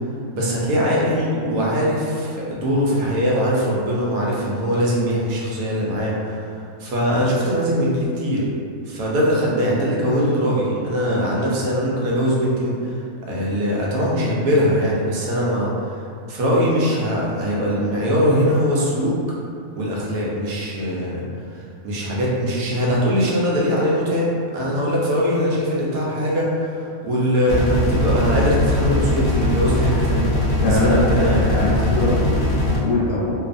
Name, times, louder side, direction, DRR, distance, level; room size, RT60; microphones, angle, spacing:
voice 1, 0.3-8.5 8.9-13.0 13.3-16.0 16.3-19.2 19.8-21.2 21.5-31.4, equal, 80° right, -5 dB, 1.1 m, -21 dB
sound 1, 27.5-32.8, left 1 dB, 50° left, 0.6 m, -21 dB
voice 2, 30.6-33.4, left 2 dB, 80° left, -7 dB, 1.0 m, -22 dB
2.6 x 2.4 x 2.4 m, 2.3 s
omnidirectional pair, 1.5 m